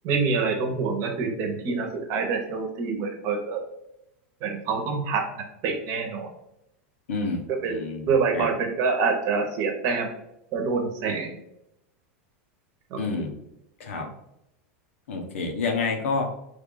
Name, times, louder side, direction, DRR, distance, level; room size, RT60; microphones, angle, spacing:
voice 1, 0.0-3.6 4.4-6.3 7.6-7.8 8.1-10.1 10.5-11.3 12.9-13.0, right 4 dB, 45° right, 3 dB, 0.9 m, -26 dB
voice 2, 7.1-8.5 13.0-13.3 13.8-14.1 15.1-16.3, left 4 dB, 90° left, 4 dB, 0.8 m, -29 dB
3.3 x 2.4 x 3.9 m, 0.84 s
supercardioid pair, 140°, 7 cm